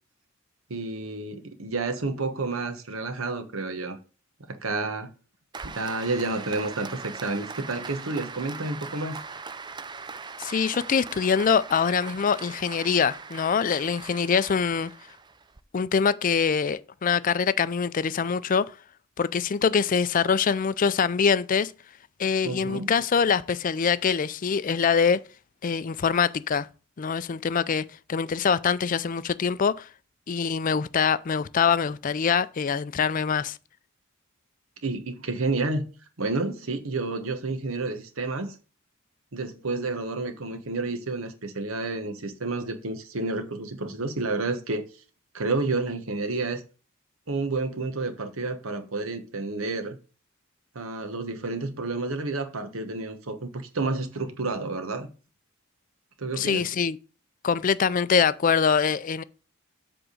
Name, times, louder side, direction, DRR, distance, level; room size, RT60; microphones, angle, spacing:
voice 1, 0.7-4.0 4.4-5.1 5.6-9.2 22.4-22.9 34.8-35.9 36.2-38.5 39.3-44.9 45.3-46.6 47.3-50.0 50.7-55.1 56.2-56.7, right 3 dB, 80° right, 1.2 m, -30 dB
Applause, 5.5-15.6, right 4 dB, 20° right, 0.4 m, -40 dB
voice 2, 10.4-14.9 15.7-18.8 19.2-21.7 22.2-25.2 25.6-26.7 27.0-29.9 30.3-33.6 56.4-57.0 57.4-59.2, left 6 dB, 40° left, 0.4 m, -24 dB
7.8 x 3.6 x 6.4 m
head